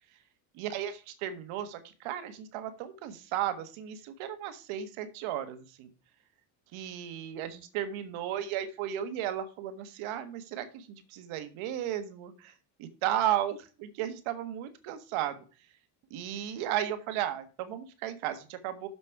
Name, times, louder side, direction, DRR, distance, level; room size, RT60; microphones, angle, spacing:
voice 1, 0.6-5.9 6.7-12.5 12.8-15.4 16.1-18.9, right 11 dB, 75° right, 10 dB, 1.5 m, -34 dB
6.9 x 5.2 x 5.8 m, 0.35 s
supercardioid pair, 90°, 49 cm